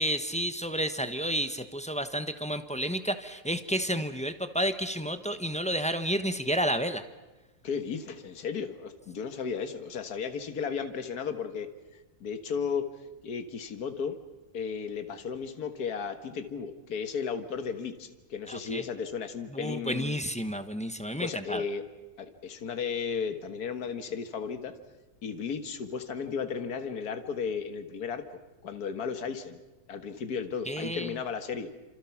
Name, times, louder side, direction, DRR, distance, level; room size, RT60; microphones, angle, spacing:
voice 1, 0.0-7.0 18.5-18.8 19.5-21.6 30.7-31.1, equal, 5° left, 9 dB, 0.9 m, -31 dB
voice 2, 7.6-11.7 12.2-12.9 13.2-14.2 14.5-20.2 21.2-21.8 22.2-24.7 25.2-28.2 28.6-29.6 29.9-31.7, left 6 dB, 75° left, 8 dB, 2.0 m, -34 dB
29.0 x 27.0 x 5.9 m, 1.1 s
omnidirectional pair, 1.7 m